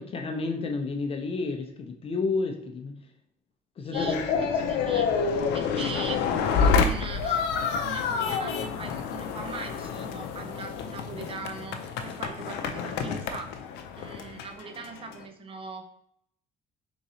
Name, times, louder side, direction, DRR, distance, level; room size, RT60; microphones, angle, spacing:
voice 1, 0.0-2.9 3.8-4.2, left 3 dB, 35° left, 4 dB, 0.6 m, -30 dB
sound 1, 3.9-15.2, left 5 dB, 90° left, 0.4 m, -28 dB
voice 2, 3.9-5.1 5.5-6.3 6.7-7.5 7.8-13.5 14.0-15.9, right 4 dB, 35° right, 6 dB, 0.5 m, -40 dB
3.7 x 3.0 x 2.7 m, 0.71 s
cardioid pair, 110°, 17 cm